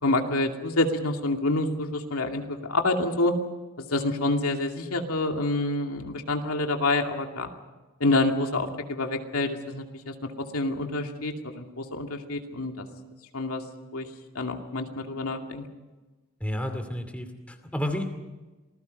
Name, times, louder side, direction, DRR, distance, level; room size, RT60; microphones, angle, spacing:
voice 1, 0.0-3.3 3.8-7.5 8.0-10.1 10.5-12.9 13.3-13.6 13.9-14.1 14.3-15.6, left 2 dB, 80° left, 3 dB, 2.5 m, -27 dB
voice 2, 16.4-18.0, left 1 dB, 5° left, 5 dB, 2.4 m, -31 dB
27.0 x 20.0 x 5.4 m, 1.2 s
head